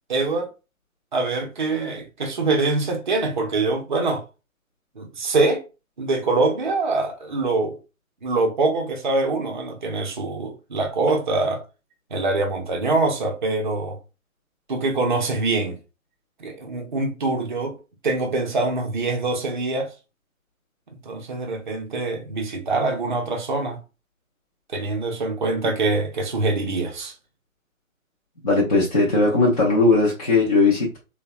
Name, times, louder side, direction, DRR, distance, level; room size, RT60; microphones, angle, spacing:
voice 1, 0.1-0.5 1.1-4.2 5.0-5.6 6.0-7.8 8.2-11.6 12.1-14.0 14.7-15.8 16.4-17.8 18.0-19.9 21.1-23.8 24.7-27.1, right 3 dB, 35° right, 0.5 m, -24 dB
voice 2, 28.4-31.0, left 3 dB, 30° left, 0.5 m, -18 dB
3.4 x 2.1 x 2.4 m
figure-of-eight pair, 140°, 42 cm